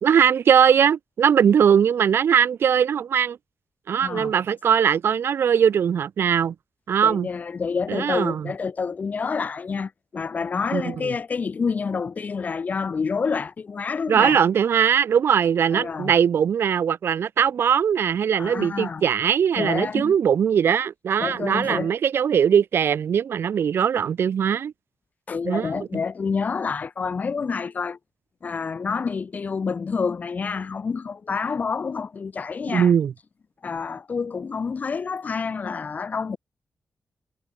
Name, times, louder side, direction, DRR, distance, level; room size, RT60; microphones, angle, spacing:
voice 1, 0.0-3.4 3.9-6.5 6.9-7.3 7.9-8.5 10.7-11.1 14.1-24.7 25.4-25.7 32.7-33.1, right 8 dB, 75° right, 2.2 m, -20 dB
voice 2, 4.0-4.3 7.0-14.4 15.7-16.1 18.4-19.1 19.6-20.1 21.2-21.9 25.3-28.0 28.4-32.9 33.6-36.4, left 5 dB, 40° left, 5.8 m, -28 dB
wide cardioid pair, 165°, 4 cm